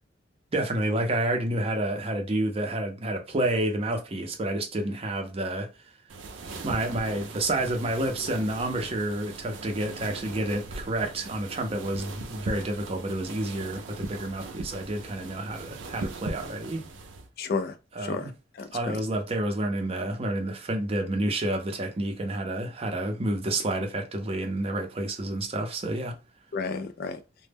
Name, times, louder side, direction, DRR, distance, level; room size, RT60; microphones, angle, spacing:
voice 1, 0.5-5.7 6.6-16.8 17.9-18.3 18.7-26.2, right 1 dB, 30° right, 0.5 m, -29 dB
sound 1, 6.1-17.3, right 3 dB, 90° right, 0.5 m, -40 dB
voice 2, 17.4-18.3 18.6-19.0 26.5-27.2, left 4 dB, 50° left, 0.3 m, -32 dB
2.0 x 2.0 x 3.3 m
head